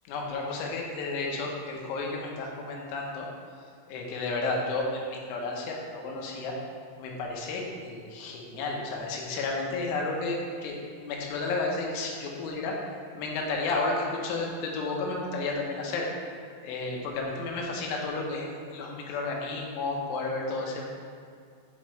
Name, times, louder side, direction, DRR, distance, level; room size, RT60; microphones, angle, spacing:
voice 1, 0.1-3.3 3.9-6.6 7.0-12.8 13.1-16.1 16.6-20.9, left 3 dB, 90° left, -1 dB, 3.3 m, -32 dB
9.1 x 4.4 x 3.1 m, 2.2 s
omnidirectional pair, 5.4 m